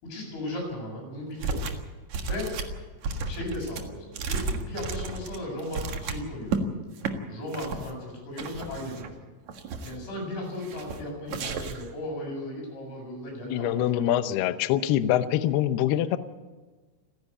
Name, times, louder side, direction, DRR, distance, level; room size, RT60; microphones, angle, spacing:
voice 1, 0.0-1.6 2.2-2.6 3.3-6.7 7.3-9.1 9.8-14.3, left 1 dB, 70° left, -1 dB, 10.0 m, -36 dB
sound 1, 1.4-6.6 7.0-7.1 7.5-7.9 8.4-9.1 9.5-10.1 10.6-11.0 11.3-11.9, right 4 dB, 70° right, 1.7 m, -33 dB
voice 2, 13.5-16.2, left 12 dB, 90° left, 11 dB, 2.2 m, -24 dB
29.5 x 10.5 x 8.4 m, 1.3 s
omnidirectional pair, 5.9 m